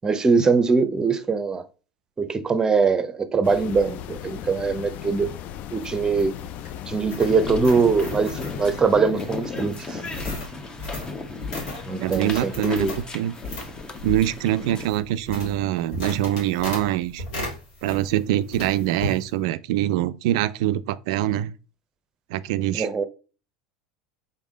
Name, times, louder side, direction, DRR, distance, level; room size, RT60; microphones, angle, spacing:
voice 1, 0.0-1.6 2.2-5.3 5.7-6.3 6.9-10.0 11.9-12.9 22.7-23.0, right 4 dB, 20° right, 0.7 m, -22 dB
sound 1, 3.4-8.8, left 11 dB, 50° left, 0.4 m, -37 dB
sound 2, 5.8-18.2 18.5-19.2, left 2 dB, 75° left, 2.4 m, -36 dB
sound 3, 7.2-14.9, left 3 dB, 25° left, 0.8 m, -35 dB
voice 2, 12.0-13.3 14.0-17.2 17.8-21.5 22.3-23.0, right 13 dB, 65° right, 0.3 m, -24 dB
4.1 x 3.5 x 3.7 m
hypercardioid pair, 85°, 3 cm